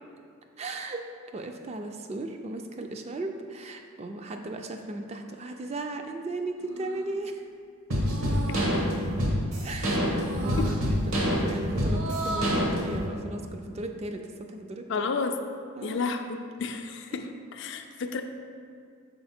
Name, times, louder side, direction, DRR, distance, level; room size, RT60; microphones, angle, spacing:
voice 1, 0.6-1.1 1.3-7.5 9.6-10.2 10.4-15.1 15.8-16.1, right 2 dB, 30° right, 5 dB, 0.3 m, -36 dB
sound 1, 6.6-7.1 8.0-8.7 10.1-10.8 11.7-12.7, right 3 dB, 60° right, 0.6 m, -36 dB
sound 2, 7.9-13.0, equal, 80° right, 1.2 m, -26 dB
voice 2, 14.9-15.4 15.8-18.2, left 4 dB, 55° left, 6 dB, 0.4 m, -32 dB
5.8 x 4.0 x 4.3 m, 2.2 s
head